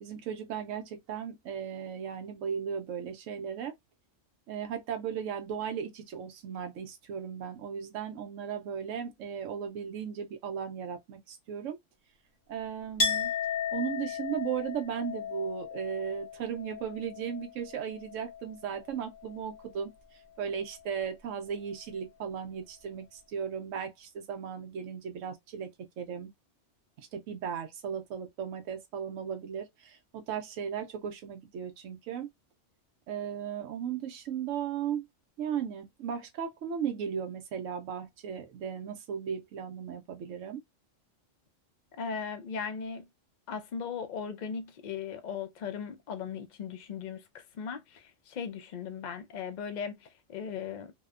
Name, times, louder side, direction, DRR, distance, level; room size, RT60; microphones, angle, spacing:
voice 1, 0.0-3.7 4.5-11.8 12.5-13.3 13.7-19.9 20.4-25.7 26.0-26.3 27.0-32.3 33.1-35.0 35.4-40.6, right 8 dB, 85° right, 1.0 m, -36 dB
Chink clink, 13.0-18.5 18.8-19.7, left 5 dB, 75° left, 1.3 m, -35 dB
voice 2, 42.0-43.1 43.5-50.9, left 6 dB, 60° left, 0.5 m, -38 dB
2.8 x 2.1 x 2.3 m
omnidirectional pair, 1.3 m